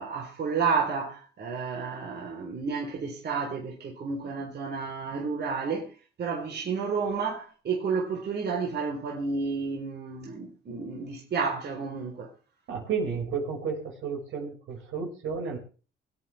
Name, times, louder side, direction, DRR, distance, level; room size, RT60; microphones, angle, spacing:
voice 1, 0.0-5.9 6.2-12.3, right 5 dB, 55° right, 4.1 m, -31 dB
voice 2, 12.7-15.6, right 5 dB, 80° right, 5.8 m, -32 dB
24.0 x 9.0 x 3.5 m
cardioid pair, 90°, 20 cm